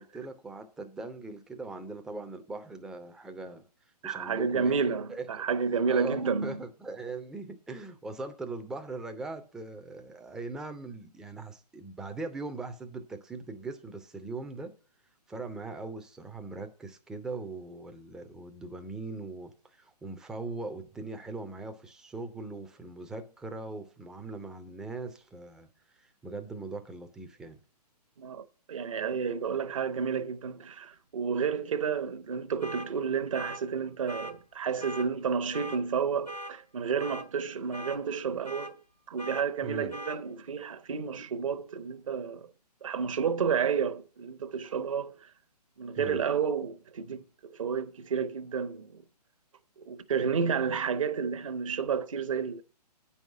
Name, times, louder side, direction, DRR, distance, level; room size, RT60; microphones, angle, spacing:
voice 1, 0.0-3.7 4.0-5.3 5.6-14.7 15.3-25.7 26.0-27.6 39.6-39.9 46.0-46.2, right 3 dB, 5° right, 0.4 m, -40 dB
voice 2, 4.0-6.6 28.2-38.7 39.1-42.5 42.8-45.3 45.8-49.0 49.8-52.6, right 6 dB, 50° right, 0.8 m, -31 dB
sound 1, 32.6-32.9 33.3-33.6 34.1-34.3 34.8-35.1 35.5-35.8 36.3-36.5 37.0-37.3 37.7-38.0 38.4-38.7 39.2-39.4 39.9-40.2, equal, 85° left, 2.6 m, -40 dB
9.1 x 5.6 x 7.6 m
figure-of-eight pair, 130°, 21 cm